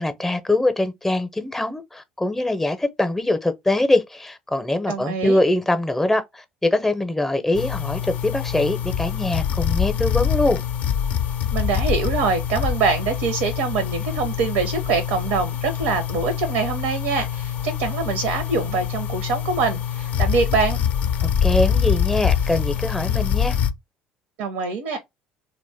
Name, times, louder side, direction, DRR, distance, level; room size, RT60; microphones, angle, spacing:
voice 1, 0.0-10.6 21.2-23.6, left 2 dB, 10° left, 0.6 m, -23 dB
voice 2, 4.9-5.4 11.5-20.8 24.4-25.0, right 4 dB, 75° right, 0.6 m, -24 dB
sound 1, 7.5-23.7, left 8 dB, 55° left, 0.4 m, -24 dB
2.5 x 2.1 x 3.3 m
hypercardioid pair, 70°, 3 cm